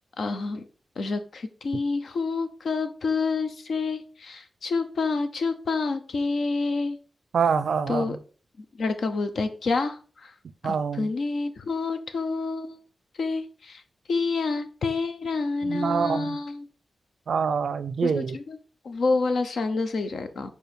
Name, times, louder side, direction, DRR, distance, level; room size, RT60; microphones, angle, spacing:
voice 1, 0.2-0.7 1.0-7.0 7.9-8.2 8.8-10.3 10.6-12.8 13.2-13.8 14.1-16.7 18.0-18.6 18.8-20.5, left 3 dB, 65° left, 9 dB, 0.7 m, -28 dB
voice 2, 7.3-8.2 10.6-11.1 15.6-16.4 17.3-18.4, right 6 dB, 70° right, 14 dB, 0.4 m, -26 dB
4.7 x 4.6 x 5.1 m, 0.38 s
wide cardioid pair, 170°, 0 cm